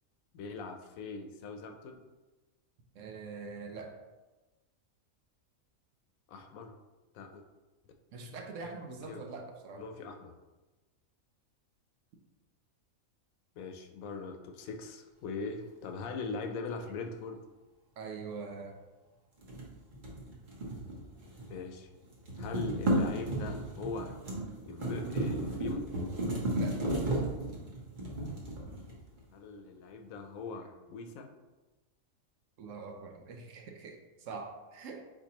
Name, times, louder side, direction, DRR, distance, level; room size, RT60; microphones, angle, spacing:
voice 1, 0.3-1.9 6.3-6.7 7.1-7.4 8.6-8.7 9.1-9.2 9.8-10.3 13.6-17.4 21.5-21.9 22.4-24.1 24.6-25.9 29.3-31.3, left 4 dB, 80° left, 5 dB, 1.0 m, -41 dB
voice 2, 3.0-4.0 8.1-9.8 18.0-18.7 26.6-26.8 32.6-35.1, right 4 dB, 70° right, 3 dB, 1.0 m, -43 dB
sound 1, 19.4-21.6 21.9-29.2, right 1 dB, 40° right, 0.9 m, -34 dB
4.6 x 4.1 x 2.8 m, 1.2 s
omnidirectional pair, 1.4 m